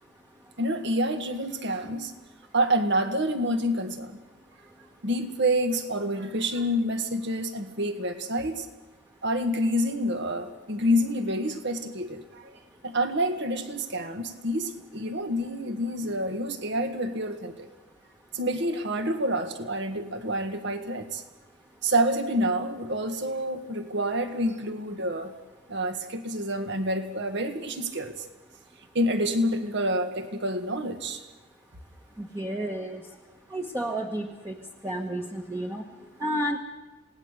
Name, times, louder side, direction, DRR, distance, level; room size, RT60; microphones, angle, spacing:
voice 1, 0.6-2.1 2.5-4.2 5.0-8.7 9.2-12.5 12.8-17.7 18.3-21.2 21.8-25.3 25.7-28.2 29.0-31.2, equal, 60° right, 1.8 m, -28 dB
voice 2, 32.2-33.0 33.5-34.6 34.8-35.8 36.2-36.6, right 1 dB, 15° right, 1.3 m, -31 dB
27.0 x 18.5 x 6.7 m
head